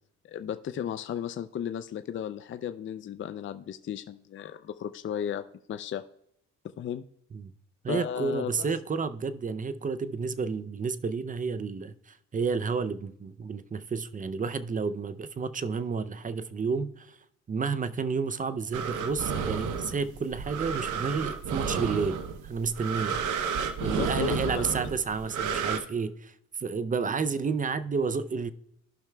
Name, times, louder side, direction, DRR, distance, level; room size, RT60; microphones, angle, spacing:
voice 1, 0.2-5.4 5.7-6.0 6.8-7.0 7.9-8.7 23.8-24.7, left 9 dB, 40° left, 0.5 m, -34 dB
voice 2, 7.8-17.2 17.5-23.2 23.8-26.3 26.6-28.5, right 5 dB, 25° right, 0.5 m, -31 dB
breath in and out compr, 18.7-25.8, right 6 dB, 80° right, 0.9 m, -32 dB
15.0 x 5.8 x 2.2 m
cardioid pair, 90°, 30 cm